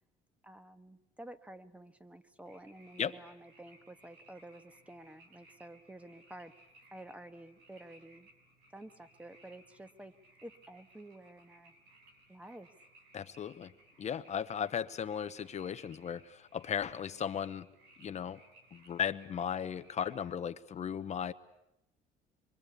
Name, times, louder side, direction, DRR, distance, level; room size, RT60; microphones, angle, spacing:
voice 1, 0.4-6.5 6.9-8.3 8.7-10.2 10.4-11.7 12.3-12.7, right 1 dB, 10° right, 10 dB, 1.4 m, -51 dB
sound 1, 2.5-20.1, right 1 dB, 85° right, 5.8 m, -62 dB
voice 2, 13.1-13.7 14.0-17.7 18.0-18.4 18.7-21.3, left 8 dB, 40° left, 11 dB, 0.9 m, -36 dB
25.0 x 24.0 x 8.3 m, 0.83 s
cardioid pair, 110°, 17 cm